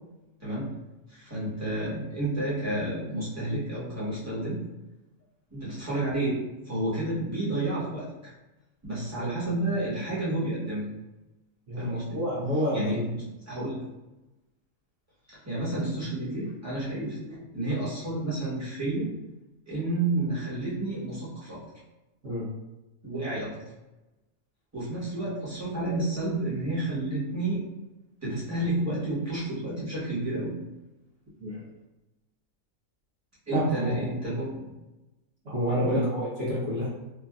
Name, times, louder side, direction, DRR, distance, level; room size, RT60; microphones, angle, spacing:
voice 1, 1.1-4.6 5.5-8.3 8.8-10.8 11.8-12.2 12.7-13.0 13.5-13.8 15.3-19.1 19.7-21.6 23.0-23.5 24.7-27.6 28.2-30.5 31.5-31.6 33.5-34.5 35.8-36.1, right 2 dB, 10° right, -10 dB, 1.0 m, -30 dB
voice 2, 12.1-13.2 22.2-22.4 31.4-31.5 33.5-34.0 35.4-36.9, equal, 65° right, -8 dB, 1.3 m, -29 dB
3.1 x 2.4 x 2.3 m, 1.0 s
omnidirectional pair, 1.5 m